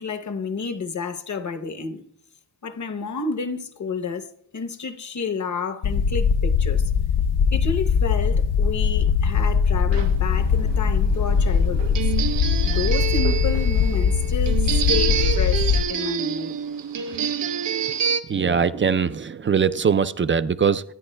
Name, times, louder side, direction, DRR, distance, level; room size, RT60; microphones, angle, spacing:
voice 1, 0.0-2.0 2.6-6.9 7.5-11.8 12.6-16.6, left 5 dB, 45° left, 0.9 m, -30 dB
sound 1, 5.8-15.8, left 6 dB, 65° left, 0.5 m, -21 dB
sound 2, 9.9-18.2, right 8 dB, 80° right, 0.8 m, -27 dB
voice 2, 18.3-20.8, right 6 dB, 30° right, 0.3 m, -21 dB
25.0 x 9.6 x 2.2 m
cardioid pair, 85°, 42 cm